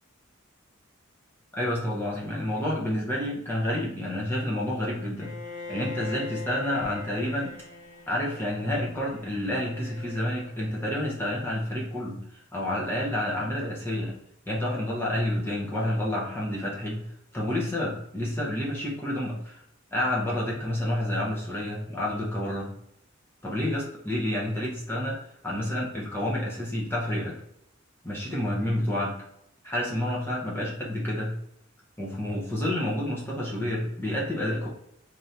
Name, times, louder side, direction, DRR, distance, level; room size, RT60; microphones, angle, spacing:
voice 1, 1.5-5.3 5.7-7.5 8.1-14.1 14.5-17.0 17.3-19.6 19.9-22.7 23.4-25.2 25.4-27.4 28.0-29.2 29.6-31.3 32.0-34.7, left 1 dB, 10° left, -5 dB, 0.6 m, -29 dB
Bowed string instrument, 5.2-11.1, left 3 dB, 40° left, 0.8 m, -42 dB
3.2 x 2.6 x 2.6 m, 0.75 s
head